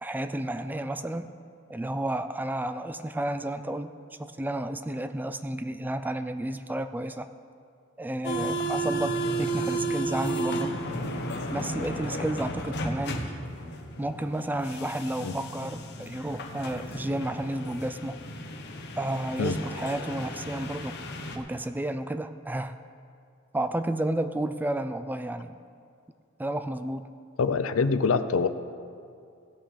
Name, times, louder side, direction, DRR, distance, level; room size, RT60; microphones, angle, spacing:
voice 1, 0.0-1.3 1.7-3.9 4.2-7.3 8.0-10.7 11.5-13.3 14.0-18.2 19.0-21.0 21.4-22.7 23.5-25.5 26.4-27.1, right 1 dB, 10° right, 10 dB, 0.3 m, -31 dB
sound 1, 8.2-21.4, right 1 dB, 55° left, 1.1 m, -33 dB
voice 2, 27.4-28.5, left 4 dB, 85° left, 12 dB, 0.6 m, -24 dB
16.5 x 6.3 x 6.3 m, 2.4 s
head